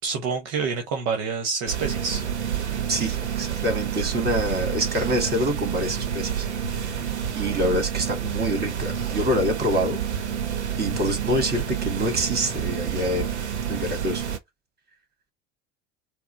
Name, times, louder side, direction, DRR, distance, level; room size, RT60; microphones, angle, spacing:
voice 1, 0.0-2.2, right 5 dB, 60° right, 1.0 m, -27 dB
sound 1, 1.7-14.4, right 8 dB, 85° right, 0.7 m, -28 dB
voice 2, 2.9-6.5 6.7-7.0 7.3-10.0 10.8-13.4 13.7-14.2, equal, 30° right, 2.2 m, -26 dB
4.6 x 2.0 x 4.4 m
figure-of-eight pair, 70°, 34 cm